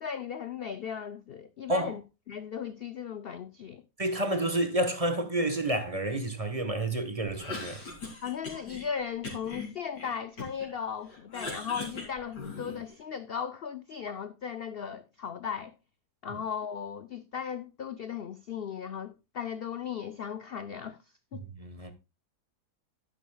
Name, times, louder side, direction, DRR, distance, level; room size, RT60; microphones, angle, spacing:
voice 1, 0.0-2.0 2.3-3.8 8.2-15.7 16.2-21.0 21.3-21.4, left 7 dB, 70° left, 0.5 m, -37 dB
voice 2, 4.0-7.8 16.3-16.4 21.3-21.9, right 1 dB, 25° right, 1.2 m, -30 dB
Cough, 7.3-8.9 9.2-10.7 11.1-13.0, left 3 dB, 85° left, 3.8 m, -40 dB
11.0 x 10.5 x 2.3 m
omnidirectional pair, 1.8 m